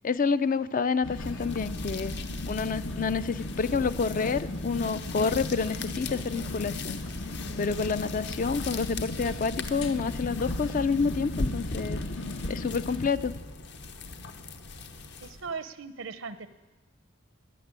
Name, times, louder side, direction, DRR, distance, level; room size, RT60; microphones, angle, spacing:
voice 1, 0.0-2.1 2.4-7.0 7.6-12.0 12.5-13.4, left 5 dB, 45° left, 14 dB, 0.4 m, -28 dB
sound 1, 1.0-13.1, left 2 dB, 80° left, 1.2 m, -37 dB
sound 2, 1.1-15.5, left 2 dB, 60° left, 1.0 m, -39 dB
voice 2, 15.2-16.5, right 5 dB, 80° right, 13 dB, 0.8 m, -38 dB
19.5 x 6.8 x 9.6 m, 1.2 s
head